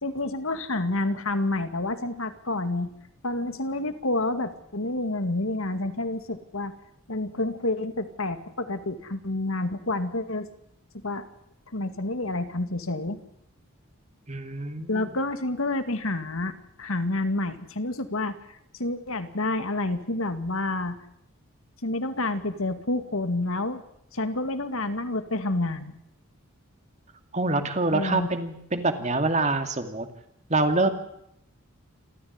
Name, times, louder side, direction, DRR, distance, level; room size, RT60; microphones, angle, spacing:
voice 1, 0.0-2.9 3.2-6.7 7.1-10.5 10.9-11.2 11.7-13.2 14.9-18.4 18.8-21.0 21.8-23.8 24.1-25.9 27.9-28.3, left 2 dB, 70° left, 9 dB, 2.3 m, -29 dB
voice 2, 14.3-15.1 27.3-30.1 30.5-30.9, right 2 dB, 30° right, 7 dB, 2.5 m, -25 dB
28.0 x 14.0 x 9.7 m, 0.76 s
head